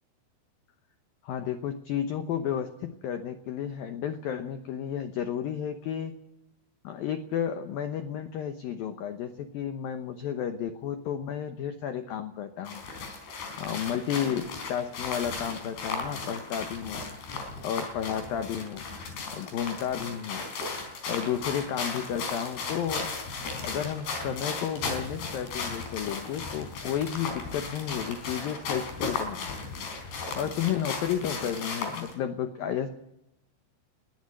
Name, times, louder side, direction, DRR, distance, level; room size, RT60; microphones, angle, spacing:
voice 1, 1.2-6.1 6.8-12.8 13.6-17.1 17.6-18.9 19.3-20.5 21.1-23.1 23.6-29.6 30.3-32.9, left 9 dB, 80° left, 8 dB, 2.1 m, -32 dB
sound 1, 12.7-32.1, left 4 dB, 55° left, 5.8 m, -36 dB
21.5 x 14.5 x 9.7 m, 0.83 s
omnidirectional pair, 5.7 m